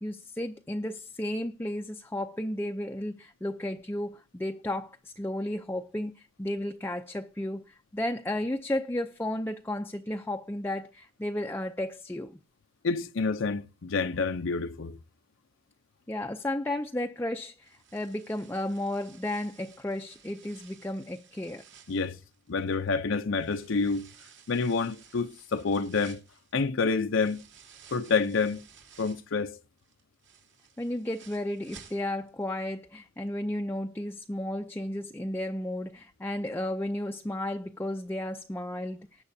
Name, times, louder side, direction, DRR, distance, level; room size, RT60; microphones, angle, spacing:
voice 1, 0.0-12.4 16.1-21.6 30.8-39.2, left 1 dB, 10° left, 0.5 m, -33 dB
voice 2, 12.8-15.0 21.9-22.2 22.5-24.1 24.5-26.2 26.5-27.4 27.9-28.6 29.0-29.6, left 4 dB, 75° left, 0.6 m, -28 dB
sound 1, 17.6-22.9 23.4-29.4 29.8-32.4 32.7-32.8 33.3-33.4, right 7 dB, 65° right, 3.0 m, -55 dB
20.0 x 9.1 x 2.7 m
head